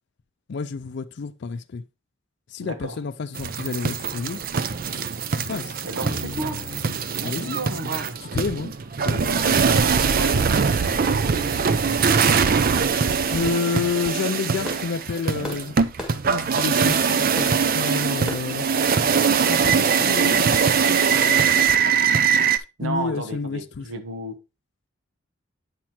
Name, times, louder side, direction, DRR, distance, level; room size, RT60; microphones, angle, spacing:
voice 1, 0.5-1.8 2.5-4.4 5.3-5.8 7.2-8.0 8.3-8.7 9.0-9.7 10.0-10.5 13.2-15.8 16.2-21.4 22.6-23.9, left 4 dB, 60° left, 0.4 m, -30 dB
voice 2, 2.6-3.0 5.8-6.7 7.1-8.2 9.6-10.7 11.1-11.6 22.8-24.4, right 2 dB, 85° right, 1.3 m, -32 dB
sound 1, 3.4-22.6, right 6 dB, 45° right, 0.5 m, -22 dB
sound 2, 6.0-9.0, left 3 dB, 30° left, 1.1 m, -39 dB
Fireworks, 14.3-19.9, left 1 dB, 5° right, 1.7 m, -39 dB
8.7 x 5.7 x 2.9 m
head